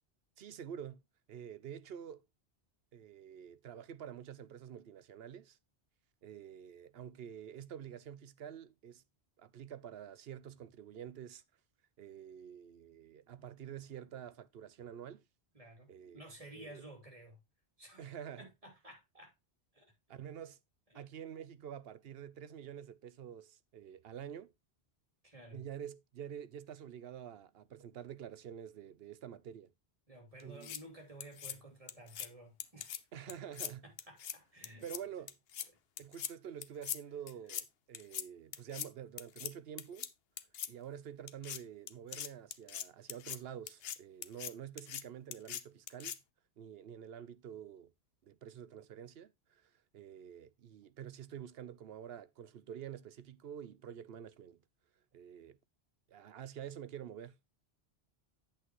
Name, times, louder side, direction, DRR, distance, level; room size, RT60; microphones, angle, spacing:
voice 1, 0.4-1.0 1.3-2.2 2.9-5.6 6.2-9.0 9.4-11.4 12.0-15.2 15.9-16.2 16.5-16.8 18.0-18.4 20.1-20.6 20.9-24.5 25.5-29.7 30.4-30.7 33.1-33.8 34.8-35.4 36.0-40.1 40.7-46.2 46.6-47.9 48.2-54.6 55.1-55.6 56.1-57.4, right 9 dB, 70° right, 0.9 m, -48 dB
voice 2, 15.5-17.4 17.8-18.1 18.4-19.3 19.7-19.9 20.9-21.0 25.2-25.6 30.1-32.9 33.8-34.9, right 1 dB, 35° right, 2.7 m, -53 dB
sound 1, 30.4-30.8 31.2-31.5 31.9-32.3 32.6-33.0 33.3-33.7 34.0-34.3 34.6-35.0 35.3-35.7 36.0-36.3 36.6-37.0 37.3-37.6 37.9-38.2 38.5-38.9 39.2-39.5 39.8-40.1 40.4-40.7 41.3-41.6 41.9-43.4 43.7-44.0 44.2-44.5 44.8-45.0 45.3-45.6 45.9-46.2, left 9 dB, 65° left, 0.9 m, -41 dB
8.8 x 8.0 x 3.0 m
omnidirectional pair, 1.1 m